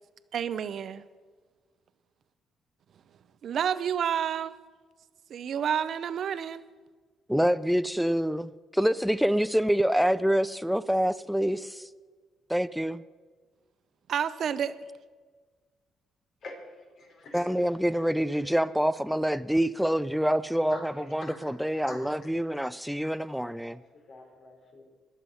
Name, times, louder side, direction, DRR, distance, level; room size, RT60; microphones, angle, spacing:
voice 1, 0.3-1.0 3.4-4.5 5.3-6.6 14.1-14.7, right 8 dB, 60° right, 0.7 m, -29 dB
voice 2, 7.3-8.4 8.8-11.8 12.5-13.0 17.3-23.8, equal, ahead, 0.4 m, -26 dB
voice 3, 16.4-18.0 20.7-20.8 21.3-21.5 21.9-22.1 23.4-23.8 24.1-24.8, left 2 dB, 65° left, 3.9 m, -46 dB
21.0 x 7.5 x 5.6 m
cardioid pair, 90°, 0 cm